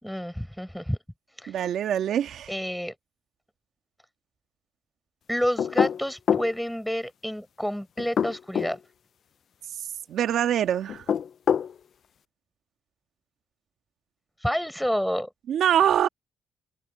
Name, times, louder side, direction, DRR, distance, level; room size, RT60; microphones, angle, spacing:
voice 1, 0.0-1.0 1.4-1.5 2.5-2.9 5.3-8.8 14.4-15.3, equal, ahead, 4.5 m, -29 dB
voice 2, 1.5-2.5 10.1-11.0 15.5-16.1, right 10 dB, 70° right, 1.5 m, -24 dB
sound 1, 5.6-6.5 8.0-8.8 10.9-11.7, left 8 dB, 55° left, 0.3 m, -24 dB
cardioid pair, 90°, 0 cm